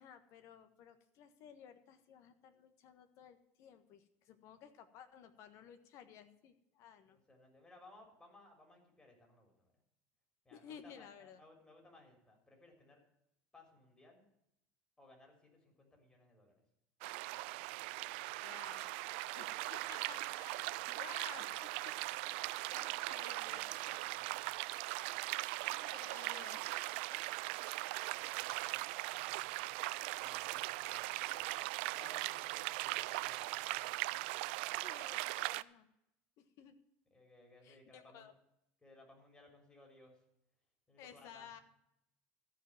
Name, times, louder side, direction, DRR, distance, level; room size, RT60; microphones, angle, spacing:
voice 1, 0.0-7.2 10.5-11.4 18.4-19.0 19.4-22.0 22.4-23.7 25.6-27.2 34.8-35.9 36.4-36.7 37.6-38.3 41.0-41.6, left 8 dB, 55° left, 10 dB, 1.4 m, -56 dB
voice 2, 7.1-9.7 10.4-13.0 13.5-14.3 15.0-16.6 23.4-24.5 28.0-29.7 30.2-31.7 32.0-34.0 37.1-38.3 38.8-40.2 40.9-41.5, left 2 dB, 15° left, 2 dB, 3.8 m, -61 dB
sound 1, 17.0-35.6, right 21 dB, 80° right, 0.4 m, -40 dB
14.0 x 5.3 x 8.9 m, 0.81 s
supercardioid pair, 130°, 6 cm